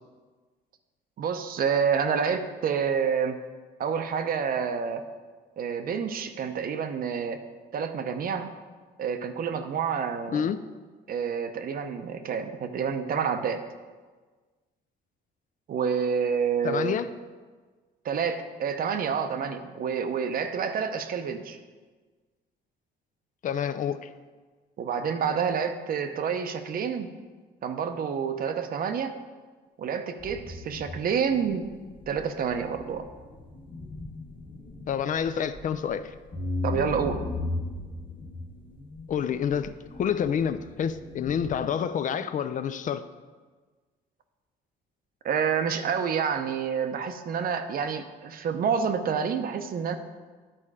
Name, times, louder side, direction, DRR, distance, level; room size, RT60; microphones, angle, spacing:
voice 1, 1.2-3.4 3.8-5.1 5.6-7.4 7.7-8.5 9.0-10.5 11.1-13.6 15.7-17.0 18.0-21.6 24.8-27.1 27.6-29.1 29.8-31.7 32.1-33.1 36.6-37.2 45.2-50.0, right 6 dB, 55° right, 0.7 m, -28 dB
voice 2, 10.3-10.6 16.6-17.1 23.4-24.1 34.9-36.1 39.1-39.7 40.0-43.0, left 8 dB, 45° left, 0.4 m, -28 dB
sound 1, 30.2-41.7, left 2 dB, 25° left, 1.5 m, -38 dB
10.0 x 4.3 x 4.8 m
cardioid pair, 105°, 18 cm